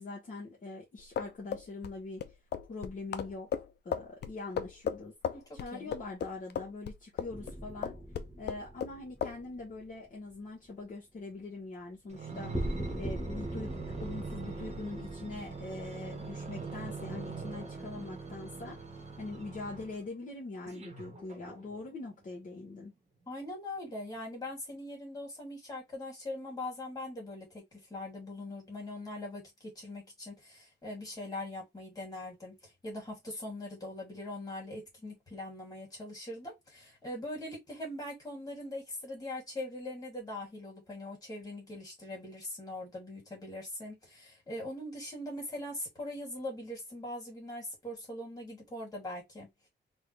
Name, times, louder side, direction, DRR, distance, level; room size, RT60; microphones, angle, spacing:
voice 1, 0.0-2.2 2.7-5.1 5.5-8.0 8.4-22.9, left 3 dB, 45° left, 1.6 m, -43 dB
sound 1, 1.0-7.5 7.8-8.9 9.2-9.4, left 8 dB, 65° left, 0.5 m, -36 dB
voice 2, 5.3-5.9 23.3-32.5 32.8-49.5, left 1 dB, 20° left, 2.5 m, -41 dB
sound 2, 7.3-10.0 12.5-16.6, right 1 dB, ahead, 0.8 m, -41 dB
sound 3, 12.1-20.1 20.7-21.9 22.6-22.7, right 4 dB, 35° right, 1.3 m, -43 dB
4.0 x 2.6 x 3.3 m
wide cardioid pair, 180°, 18 cm